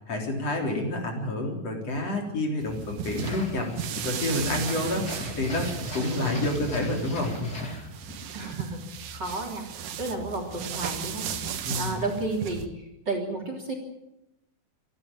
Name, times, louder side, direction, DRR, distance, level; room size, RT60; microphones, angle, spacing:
voice 1, 0.1-5.1 5.3-7.5 11.7-12.0, left 1 dB, 50° left, 1 dB, 4.7 m, -29 dB
sound 1, 2.6-12.7, right 8 dB, 70° right, 2.7 m, -36 dB
sound 2, 3.1-8.3, left 1 dB, 30° left, 3.3 m, -37 dB
voice 2, 8.3-8.8 9.1-9.6 10.0-11.4 11.8-13.7, right 2 dB, 30° right, 3 dB, 3.8 m, -32 dB
27.5 x 11.5 x 8.9 m, 0.88 s
omnidirectional pair, 3.8 m